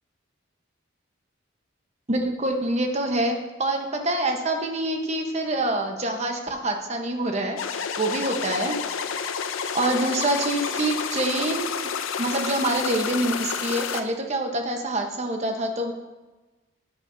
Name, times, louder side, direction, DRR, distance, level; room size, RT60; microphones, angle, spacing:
voice 1, 2.1-8.8 9.7-11.7 12.2-15.9, right 1 dB, 35° right, 3 dB, 1.0 m, -26 dB
sound 1, 7.6-14.0, left 6 dB, 85° left, 0.6 m, -30 dB
13.0 x 8.3 x 2.7 m, 1.2 s
head